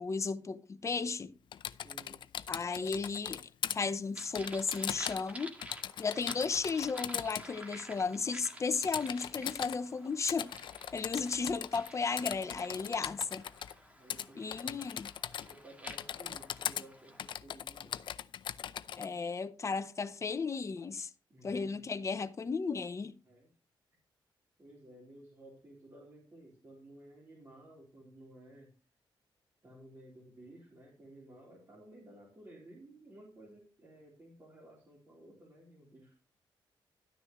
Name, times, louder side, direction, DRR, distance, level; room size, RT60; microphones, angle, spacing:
voice 1, 0.0-1.3 2.5-3.4 3.7-5.5 6.0-10.5 10.9-13.5 14.4-15.1 19.0-21.1 21.4-23.2, left 4 dB, 35° left, 0.8 m, -34 dB
Typing, 1.5-3.8 4.4-5.3 5.6-7.5 8.8-9.8 10.3-11.9 12.2-13.7 14.1-14.3 14.5-15.6 15.9-16.8 17.2-19.1, left 9 dB, 65° left, 0.6 m, -39 dB
voice 2, 1.8-2.2 6.1-6.5 14.0-14.8 15.5-18.1 21.3-21.9 23.2-23.5 24.6-28.7 29.6-36.3, right 1 dB, 30° right, 3.9 m, -55 dB
sound 1, 4.2-17.4, right 1 dB, 15° right, 1.8 m, -51 dB
12.5 x 9.7 x 3.1 m
cardioid pair, 105°, 9 cm